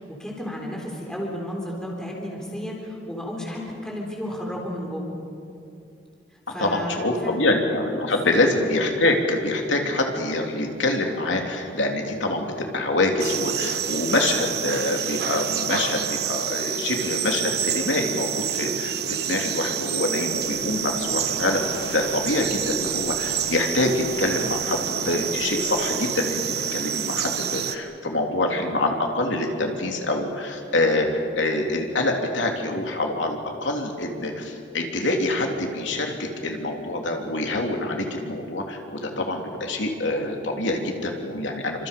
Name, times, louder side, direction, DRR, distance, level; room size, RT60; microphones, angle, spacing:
voice 1, 0.0-5.1 6.3-7.4 8.0-8.3, equal, 5° left, -2 dB, 3.8 m, -33 dB
voice 2, 6.6-26.4 26.7-41.9, left 2 dB, 85° left, 2 dB, 3.2 m, -25 dB
sound 1, 13.2-27.8, right 9 dB, 60° right, 1.2 m, -28 dB
sound 2, 20.3-26.0, left 1 dB, 35° left, 7.8 m, -44 dB
28.5 x 26.0 x 5.4 m, 2.6 s
head